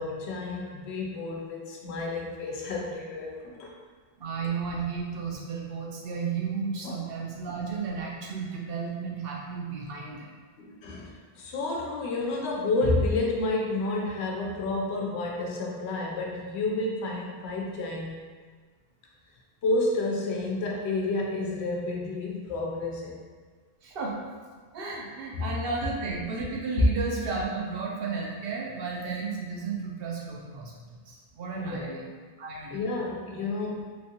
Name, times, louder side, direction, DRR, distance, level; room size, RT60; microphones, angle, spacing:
voice 1, 0.0-3.7 6.8-7.0 10.6-18.1 19.6-23.2 25.3-25.4 31.5-32.0 32.7-34.0, left 2 dB, 85° left, -1 dB, 0.9 m, -30 dB
voice 2, 4.2-10.3 23.8-24.2 24.7-32.1 32.4-32.8, right 5 dB, 65° right, -2 dB, 0.8 m, -33 dB
3.1 x 2.6 x 2.8 m, 1.5 s
omnidirectional pair, 1.1 m